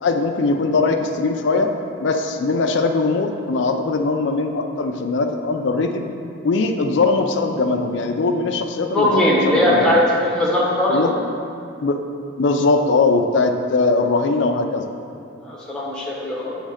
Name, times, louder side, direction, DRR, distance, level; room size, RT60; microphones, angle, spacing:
voice 1, 0.0-1.7 2.0-6.1 6.4-10.0 10.9-11.1 11.8-12.0 12.4-14.9, left 3 dB, 65° left, 5 dB, 0.4 m, -20 dB
voice 2, 8.9-11.1 15.4-16.6, left 1 dB, 5° left, -6 dB, 0.9 m, -19 dB
7.4 x 3.2 x 4.9 m, 2.4 s
head